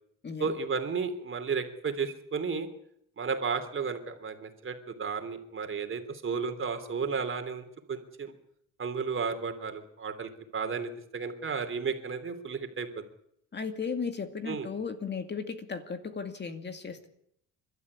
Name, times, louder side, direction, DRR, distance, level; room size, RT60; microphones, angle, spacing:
voice 1, 0.4-2.7 3.2-8.3 8.8-13.0 14.4-14.7, right 5 dB, 40° right, 7 dB, 3.2 m, -33 dB
voice 2, 13.5-17.1, left 5 dB, 30° left, 7 dB, 2.4 m, -35 dB
29.5 x 12.5 x 9.7 m, 0.74 s
cardioid pair, 105°, 33 cm